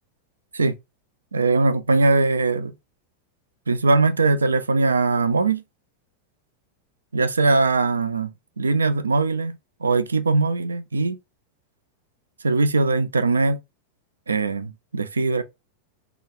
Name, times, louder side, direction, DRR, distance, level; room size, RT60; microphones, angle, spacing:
voice 1, 1.3-2.7 3.7-5.6 7.1-11.2 12.4-13.6 14.3-15.4, right 3 dB, 75° right, 0.3 m, -21 dB
3.6 x 2.3 x 2.8 m
figure-of-eight pair, 90°, 0 cm